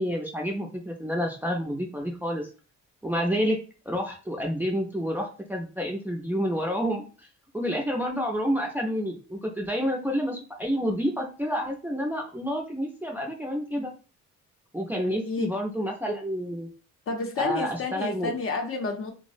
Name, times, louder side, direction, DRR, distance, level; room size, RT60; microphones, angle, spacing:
voice 1, 0.0-2.5 3.0-3.6 3.9-7.0 7.5-13.9 14.7-16.7 17.4-18.3, equal, 5° right, 0.5 m, -29 dB
voice 2, 15.2-15.5 17.1-19.1, left 3 dB, 45° left, 0.6 m, -30 dB
2.5 x 2.0 x 2.4 m
cardioid pair, 90°, 30 cm